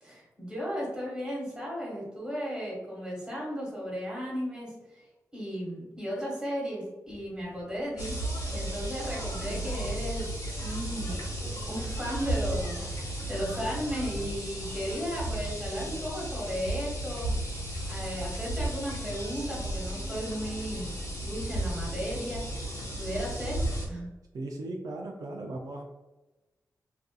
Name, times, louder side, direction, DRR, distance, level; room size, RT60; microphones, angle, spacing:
voice 1, 0.0-5.0 5.3-8.1 8.5-10.3 10.6-11.3 11.6-17.3 17.9-20.9 21.2-22.4 23.0-24.1, equal, 10° right, -5 dB, 1.4 m, -35 dB
sound 1, 7.0-12.3, equal, 40° right, 1.0 m, -47 dB
sound 2, 8.0-23.9, right 1 dB, 80° left, 1.2 m, -34 dB
voice 2, 9.4-10.0 24.3-25.8, right 2 dB, 70° right, 0 dB, 0.4 m, -38 dB
2.7 x 2.4 x 2.3 m, 1.1 s
cardioid pair, 70°, 6 cm